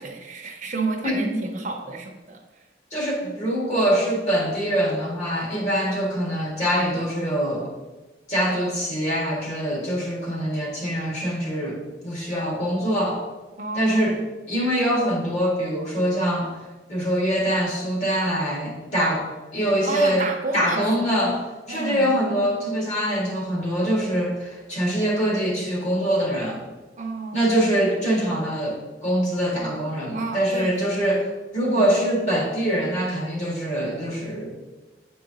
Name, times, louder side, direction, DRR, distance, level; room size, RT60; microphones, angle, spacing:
voice 1, 0.0-2.4 3.2-3.4 13.6-14.2 19.8-21.3 21.7-22.1 27.0-27.6 30.1-31.3 31.6-31.9, right 3 dB, 45° right, 2 dB, 0.7 m, -31 dB
voice 2, 1.0-1.4 2.9-7.7 8.3-13.2 13.7-14.2 14.5-16.5 16.9-19.2 19.5-20.2 20.5-21.4 21.7-26.6 27.3-34.5, equal, 40° left, -4 dB, 1.8 m, -24 dB
8.4 x 4.7 x 2.8 m, 1.2 s
head